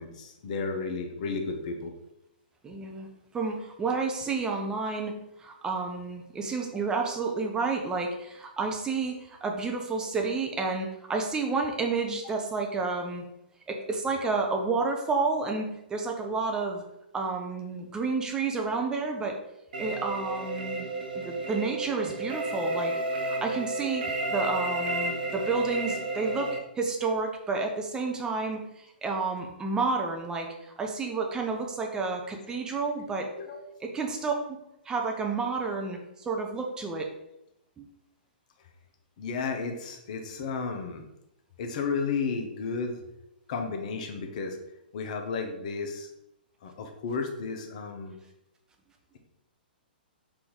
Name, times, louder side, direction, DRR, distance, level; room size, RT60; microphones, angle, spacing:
voice 1, 0.0-1.9 33.4-33.6 39.2-41.0 41.6-43.0 43.5-44.6 44.9-46.1 46.6-48.2, left 4 dB, 45° left, 4 dB, 0.6 m, -33 dB
voice 2, 2.6-3.1 3.3-13.2 13.7-16.8 17.1-19.4 19.8-20.9 21.1-26.5 26.7-33.3 33.8-34.3 34.8-37.1 37.8-37.9, right 4 dB, 15° right, 2 dB, 0.5 m, -30 dB
sound 1, 19.7-26.6, right 2 dB, 60° right, 0.7 m, -32 dB
4.3 x 2.6 x 3.7 m, 0.85 s
figure-of-eight pair, 115°, 5 cm